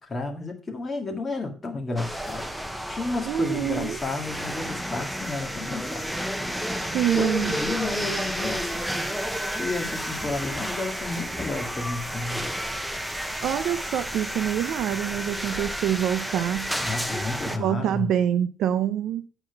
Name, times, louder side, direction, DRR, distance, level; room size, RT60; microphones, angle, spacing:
voice 1, 0.1-6.1 7.1-9.0 9.5-12.4 16.8-18.1, left 3 dB, 20° left, 1.9 m, -32 dB
sound 1, 2.0-17.6, equal, ahead, 0.7 m, -31 dB
voice 2, 3.3-4.0 6.9-7.5 13.4-16.7 17.5-19.2, right 10 dB, 70° right, 0.5 m, -26 dB
8.9 x 4.5 x 5.8 m
cardioid pair, 145°, 0 cm